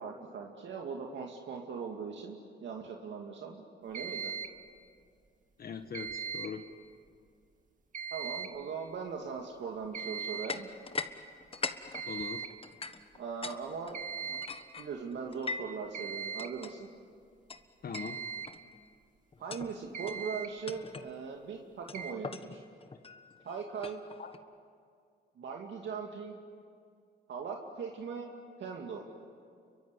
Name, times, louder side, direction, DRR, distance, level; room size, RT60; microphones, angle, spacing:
voice 1, 0.0-4.3 8.1-10.7 13.1-14.4 14.8-16.9 19.4-22.6 23.4-24.0 25.4-26.3 27.3-28.3 28.6-29.0, right 5 dB, 65° right, 1 dB, 2.3 m, -40 dB
sound 1, 3.9-4.6 5.9-6.6 7.9-8.6 9.9-10.6 11.9-12.6 13.9-14.6 15.9-16.6 17.9-18.5 19.6-19.7 19.9-20.5 21.9-22.1, right 6 dB, 40° right, 2.2 m, -39 dB
voice 2, 5.6-6.7 12.0-12.5 17.8-18.2 24.2-24.3, left 6 dB, 50° left, 7 dB, 1.4 m, -41 dB
sound 2, 10.5-11.1 11.4-13.6 13.9-15.8 16.4-16.7 17.5-17.6 17.9-18.2 18.5-18.8 19.3-19.7 20.1-20.3 20.7-21.1 21.9-24.4, left 4 dB, 30° left, 1.4 m, -41 dB
29.5 x 23.5 x 8.3 m, 2.2 s
cardioid pair, 90°, 20 cm